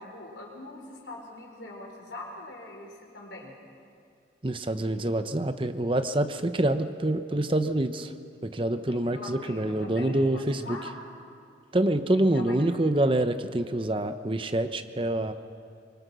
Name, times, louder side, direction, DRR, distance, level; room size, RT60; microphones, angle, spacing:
voice 1, 0.0-3.5 8.7-11.1 12.0-12.6, left 2 dB, 85° left, 0 dB, 4.8 m, -43 dB
voice 2, 4.4-8.1 8.4-10.8 11.7-15.3, right 1 dB, 30° right, 9 dB, 0.8 m, -26 dB
24.5 x 24.0 x 6.3 m, 2.3 s
head